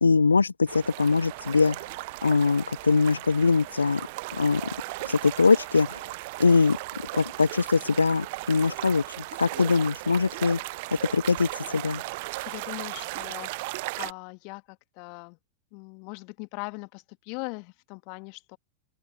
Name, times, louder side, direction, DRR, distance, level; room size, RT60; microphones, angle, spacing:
voice 1, 0.0-1.9 2.2-4.1 4.3-4.7 5.0-6.0 6.4-6.8 7.1-10.6 11.1-12.0, left 4 dB, 75° left, 0.4 m, -22 dB
sound 1, 0.7-14.1, right 23 dB, 50° right, 0.7 m, -37 dB
voice 2, 12.4-15.4 15.7-18.6, left 37 dB, 45° left, 2.0 m, -40 dB
open air
figure-of-eight pair, 95°, 0 cm